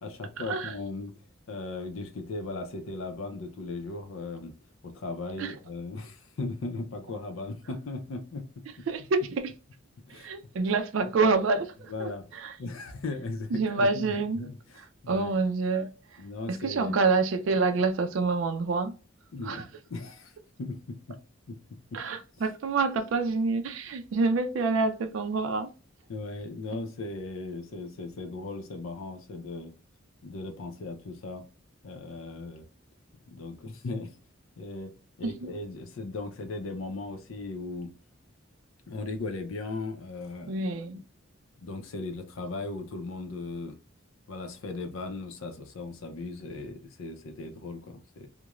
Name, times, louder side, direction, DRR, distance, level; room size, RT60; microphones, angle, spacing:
voice 1, 0.0-1.1 1.5-4.5 4.8-8.5 10.1-10.3 11.0-11.1 11.9-12.2 12.6-14.6 15.0-15.3 16.2-17.0 19.3-19.6 19.9-20.3 20.6-21.2 21.5-21.6 21.9-22.0 26.1-29.7 30.2-31.4 31.8-32.6 33.3-34.1 34.6-34.9 35.2-37.9 38.9-40.6 40.9-41.0 41.6-43.8 44.3-48.3, left 3 dB, 80° left, 0.5 m, -37 dB
voice 2, 8.9-9.5 10.1-12.5 13.5-14.5 15.1-15.9 16.5-18.9 19.4-19.6 21.9-25.7 35.2-35.5 40.5-41.0, right 3 dB, 65° right, 0.4 m, -27 dB
2.9 x 2.1 x 2.3 m
head